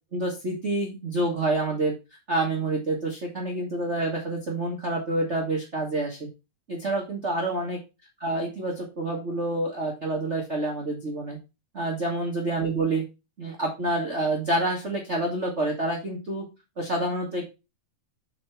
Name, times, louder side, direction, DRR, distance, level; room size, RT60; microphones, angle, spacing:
voice 1, 0.1-1.9 2.3-6.3 6.7-7.8 8.2-11.4 11.7-13.0 13.4-16.4 16.8-17.5, right 2 dB, 80° right, -1 dB, 0.6 m, -28 dB
7.5 x 4.3 x 4.4 m, 0.27 s
omnidirectional pair, 3.7 m